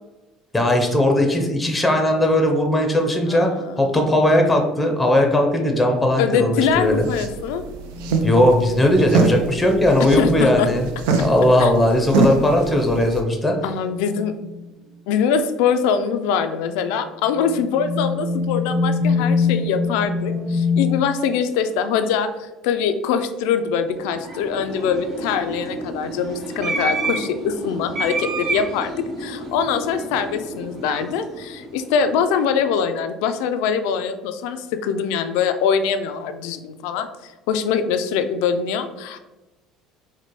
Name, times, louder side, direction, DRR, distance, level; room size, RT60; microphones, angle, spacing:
voice 1, 0.5-3.5 3.8-7.0 8.2-10.9 11.2-13.5, left 1 dB, 10° left, 3 dB, 0.6 m, -18 dB
voice 2, 3.2-4.0 6.2-7.6 10.0-10.7 11.6-11.7 13.6-14.3 15.1-39.2, left 7 dB, 80° left, 9 dB, 0.3 m, -23 dB
sound 1, 6.6-13.2, right 4 dB, 85° right, 0.4 m, -24 dB
sound 2, 7.1-9.6 11.9-12.0 12.8-12.9 13.6-14.7 15.6-16.0 16.7-21.0, left 4 dB, 25° right, 1.0 m, -25 dB
sound 3, 23.9-32.4, right 2 dB, 50° right, 0.7 m, -30 dB
4.3 x 2.1 x 3.0 m, 1.1 s
supercardioid pair, 100°, 0 cm